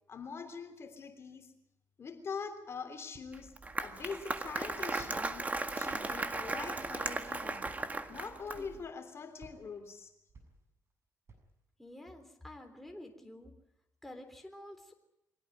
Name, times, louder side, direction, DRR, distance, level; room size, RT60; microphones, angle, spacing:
voice 1, 0.1-1.5 2.0-3.5 3.8-7.7 8.1-10.1, left 5 dB, 45° left, 6 dB, 3.3 m, -43 dB
Walk footsteps, 3.1-3.6 4.1-4.6 5.0-5.5 5.9-6.4 6.7-7.1 7.6-8.0 8.5-9.0 9.4-10.9 11.3-11.6, right 3 dB, 45° right, 7.1 m, -58 dB
Applause, 3.3-8.8, right 3 dB, 25° right, 1.9 m, -36 dB
voice 2, 11.8-13.5 14.0-14.9, left 1 dB, 5° left, 4 dB, 3.7 m, -49 dB
24.0 x 17.0 x 9.3 m, 0.84 s
cardioid pair, 105°, 6 cm